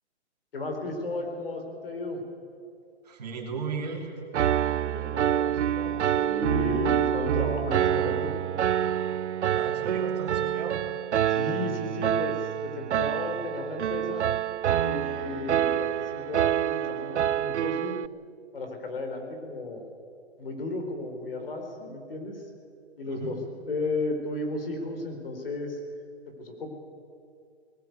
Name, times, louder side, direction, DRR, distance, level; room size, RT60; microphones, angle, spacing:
voice 1, 0.5-2.2 4.7-8.4 8.6-8.9 11.3-14.3 14.8-18.0 18.5-19.8 20.4-22.5 23.0-23.4 23.6-25.8 26.4-26.8, left 2 dB, 55° left, 4 dB, 4.4 m, -34 dB
voice 2, 3.0-4.1 9.4-10.8 23.0-23.4, right 5 dB, 35° right, 1 dB, 3.3 m, -35 dB
Piano, 4.3-18.1, right 10 dB, 90° right, 0.6 m, -27 dB
19.5 x 17.5 x 9.5 m, 2.4 s
hypercardioid pair, 180°, 34 cm